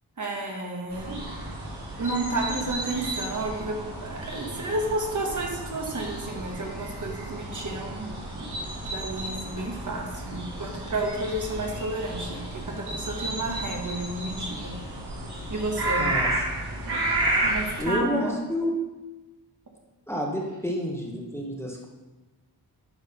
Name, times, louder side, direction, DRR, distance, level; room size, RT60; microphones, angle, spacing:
voice 1, 0.2-1.3 2.0-8.1 8.4-8.5 8.8-14.7 15.5-16.1 16.9-17.0 17.4-18.3, right 2 dB, 50° right, 1 dB, 1.5 m, -31 dB
sound 1, 0.9-17.8, right 1 dB, 90° right, 2.1 m, -32 dB
voice 2, 16.0-16.3 17.8-18.8 20.1-21.9, left 1 dB, 5° left, -2 dB, 1.3 m, -29 dB
9.7 x 3.5 x 5.7 m, 1.1 s
wide cardioid pair, 85°, 39 cm